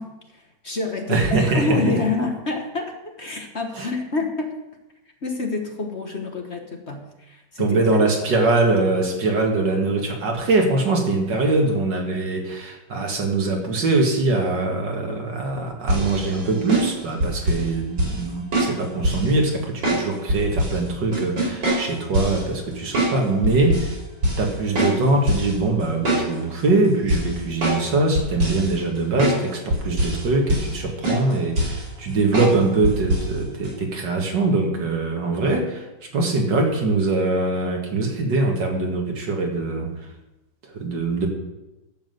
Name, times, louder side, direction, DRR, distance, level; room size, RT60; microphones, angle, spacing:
voice 1, 0.0-1.2 1.5-4.5 5.2-8.0, left 3 dB, 40° left, 3 dB, 1.4 m, -28 dB
voice 2, 1.1-1.8 3.8-3.9 7.6-23.9 24.4-35.9 36.1-39.9 40.7-41.3, right 2 dB, 70° right, 2 dB, 2.6 m, -22 dB
sound 1, 15.9-17.7 18.0-18.2 18.5-19.3 19.8-20.8 21.1-22.4 22.9-23.2 23.4-23.9 24.2-24.5 24.7-25.5 25.8-26.6 27.1-27.9 28.1-28.7 29.2-29.4 29.7-30.2 30.5-30.8 31.0-31.8 32.3-32.6 32.8-33.3 33.6-33.7, right 1 dB, 85° right, 5.5 m, -23 dB
11.5 x 7.4 x 8.0 m, 1.0 s
omnidirectional pair, 2.0 m